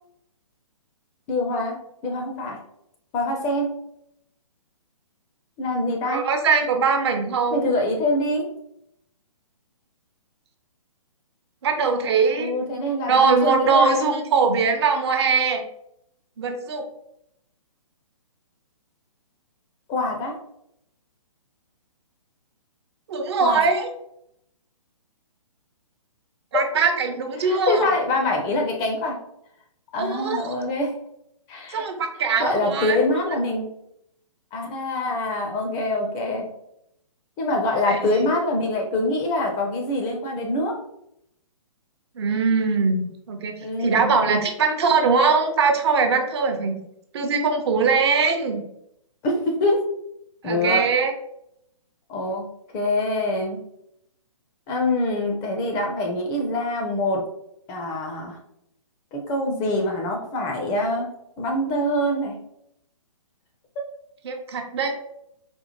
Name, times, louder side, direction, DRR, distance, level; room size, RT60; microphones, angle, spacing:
voice 1, 1.3-1.8 2.0-2.6 3.1-3.7 5.6-6.3 7.5-8.4 12.4-14.1 19.9-20.4 23.4-23.6 27.4-29.2 29.9-30.9 31.5-31.9 32.4-33.7 34.5-36.5 37.4-40.8 43.6-44.1 49.2-49.8 50.4-50.8 52.1-52.4 52.7-53.6 54.7-57.2 57.7-58.4 59.1-61.1 61.4-62.3 63.8-63.9, left 1 dB, 20° left, 1 dB, 0.5 m, -24 dB
voice 2, 6.1-7.7 11.6-12.5 13.1-15.6 16.4-16.9 23.1-23.9 26.5-27.9 30.0-30.5 31.7-33.0 37.9-38.2 42.2-43.5 43.8-46.8 47.1-48.7 50.4-51.1 64.2-65.0, right 5 dB, 50° right, 5 dB, 0.6 m, -21 dB
4.2 x 2.1 x 2.8 m, 0.76 s
figure-of-eight pair, 130°, 18 cm